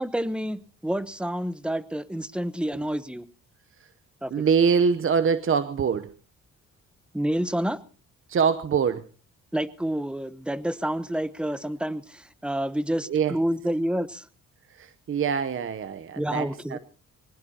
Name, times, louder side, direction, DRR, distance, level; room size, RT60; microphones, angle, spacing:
voice 1, 0.0-3.2 4.2-4.3 7.1-7.8 9.5-14.3 16.2-16.8, right 1 dB, 5° right, 15 dB, 1.0 m, -28 dB
voice 2, 4.3-6.1 8.3-9.1 13.1-13.3 14.7-16.8, right 6 dB, 45° right, 11 dB, 0.9 m, -24 dB
23.0 x 19.0 x 2.9 m, 0.37 s
cardioid pair, 90°, 30 cm